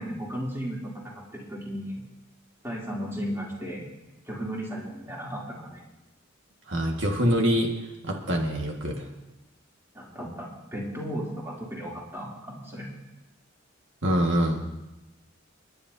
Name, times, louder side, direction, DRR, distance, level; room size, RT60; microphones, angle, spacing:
voice 1, 0.0-2.0 2.6-3.9 4.2-5.8 9.9-12.9, equal, 15° right, -4 dB, 3.0 m, -35 dB
voice 2, 6.7-7.7 8.0-9.0 14.0-14.6, equal, 65° right, 1 dB, 1.7 m, -24 dB
30.0 x 10.0 x 2.7 m, 0.99 s
head